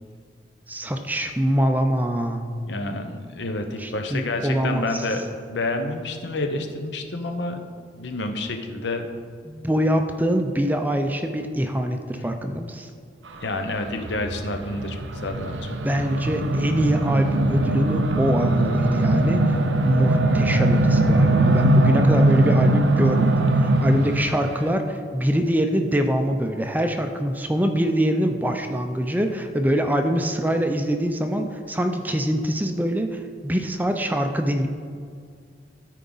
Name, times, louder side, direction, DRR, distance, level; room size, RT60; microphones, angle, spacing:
voice 1, 0.7-2.5 3.8-5.2 9.5-12.9 15.8-34.7, equal, 10° right, 5 dB, 0.4 m, -24 dB
voice 2, 2.7-5.2 5.5-7.6 7.9-9.1 13.4-15.8, left 2 dB, 75° left, 5 dB, 0.8 m, -29 dB
sound 1, 13.9-24.3, right 1 dB, 85° right, 0.6 m, -20 dB
13.5 x 4.6 x 3.9 m, 2.2 s
head